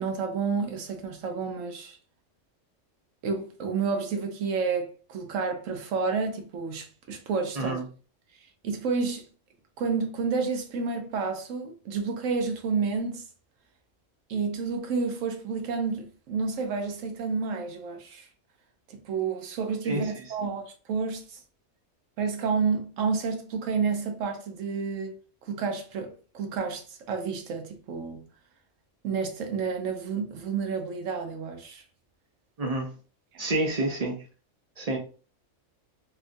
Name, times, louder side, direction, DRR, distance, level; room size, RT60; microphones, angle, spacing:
voice 1, 0.0-2.0 3.2-7.8 8.6-9.3 9.8-13.2 14.3-18.3 18.9-21.4 22.2-25.2 25.4-28.2 29.0-31.8 33.3-33.4, right 5 dB, 85° right, 1.1 m, -30 dB
voice 2, 7.6-7.9 19.8-20.3 32.6-32.9 33.4-34.2 34.8-35.0, right 2 dB, 45° right, 0.5 m, -28 dB
3.6 x 2.3 x 2.5 m
omnidirectional pair, 1.3 m